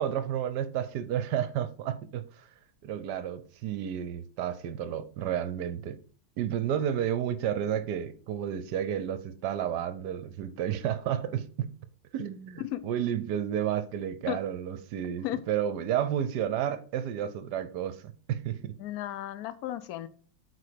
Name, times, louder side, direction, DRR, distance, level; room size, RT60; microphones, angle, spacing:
voice 1, 0.0-2.5 2.8-6.0 6.4-11.7 12.1-18.8, right 9 dB, 70° right, 1.1 m, -31 dB
voice 2, 18.8-20.1, left 13 dB, 70° left, 0.9 m, -34 dB
8.4 x 4.5 x 4.9 m
omnidirectional pair, 2.2 m